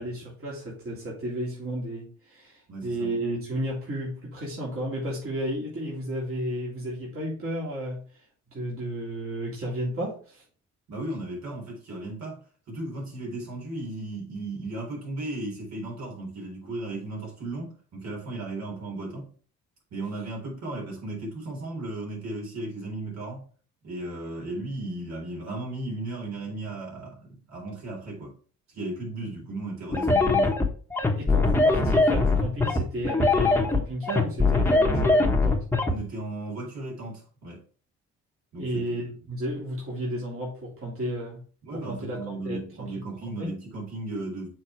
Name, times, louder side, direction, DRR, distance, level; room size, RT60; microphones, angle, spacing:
voice 1, 0.0-8.2 8.5-10.4 31.2-35.6 38.6-41.4 41.7-42.2 42.4-42.6 43.4-43.5, right 1 dB, 45° right, 3.1 m, -33 dB
voice 2, 2.7-3.1 10.9-12.4 12.7-19.3 19.9-23.4 23.8-28.3 28.7-30.6 35.9-37.6 38.5-38.8 41.6-44.5, right 2 dB, 65° right, 3.8 m, -35 dB
sound 1, 29.9-35.9, left 3 dB, 10° left, 1.2 m, -21 dB
6.7 x 4.0 x 4.5 m
cardioid pair, 90°, 30 cm